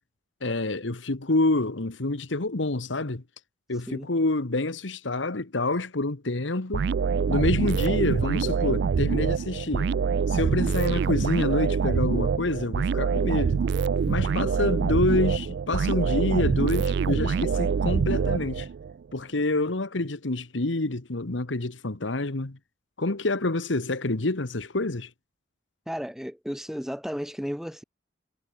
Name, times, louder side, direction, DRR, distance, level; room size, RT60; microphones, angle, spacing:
voice 1, 0.4-3.2 3.7-6.9 7.3-9.9 10.3-13.6 14.1-18.7 19.1-22.6 23.0-25.1, left 2 dB, 80° left, 1.4 m, -27 dB
sound 1, 6.7-18.9, right 6 dB, 60° right, 0.4 m, -25 dB
voice 2, 25.9-27.8, equal, ahead, 3.1 m, -33 dB
head